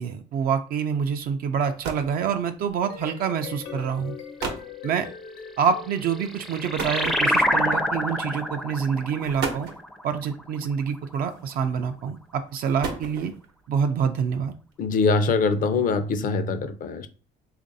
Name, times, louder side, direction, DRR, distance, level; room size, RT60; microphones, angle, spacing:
voice 1, 0.0-4.2 4.8-5.1 5.6-9.7 10.0-13.3 13.7-14.5, right 7 dB, 60° right, 6 dB, 0.4 m, -26 dB
sound 1, 1.3-1.4 1.6-2.2 3.2-3.4 4.1-4.2 4.4-4.8 6.8-7.6 8.6-8.7 9.2-9.9 11.1-11.6 12.5-13.5, right 5 dB, 80° right, 0.8 m, -33 dB
sound 2, 2.7-7.0, left 7 dB, 80° left, 1.0 m, -41 dB
sound 3, 5.9-11.0, equal, ahead, 0.4 m, -27 dB
voice 2, 14.8-17.1, left 4 dB, 55° left, 10 dB, 0.5 m, -23 dB
3.2 x 2.5 x 3.9 m, 0.38 s
cardioid pair, 110°, 17 cm